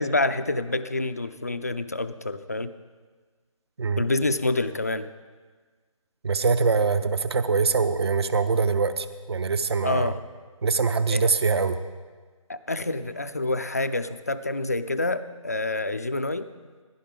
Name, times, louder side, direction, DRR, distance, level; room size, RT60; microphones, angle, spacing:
voice 1, 0.0-2.7 4.0-5.1 9.8-10.2 11.1-11.3 12.5-16.5, left 2 dB, 30° left, 11 dB, 0.3 m, -27 dB
voice 2, 6.2-10.1 10.6-11.8, right 4 dB, 50° right, 12 dB, 0.6 m, -23 dB
15.5 x 11.0 x 3.6 m, 1.4 s
figure-of-eight pair, 170°, 18 cm